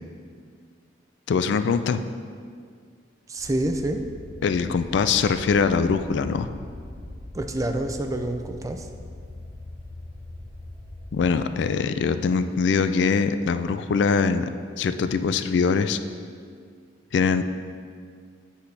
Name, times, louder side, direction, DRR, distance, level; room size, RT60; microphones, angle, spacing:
voice 1, 1.3-2.0 4.4-6.5 11.1-14.5 14.8-16.0 17.1-17.4, left 5 dB, 70° left, 11 dB, 0.3 m, -22 dB
voice 2, 3.3-4.0 7.3-8.9, right 1 dB, 20° right, 6 dB, 0.4 m, -27 dB
sound 1, 3.4-11.3, left 1 dB, 55° left, 1.5 m, -41 dB
8.1 x 6.5 x 3.3 m, 2.1 s
head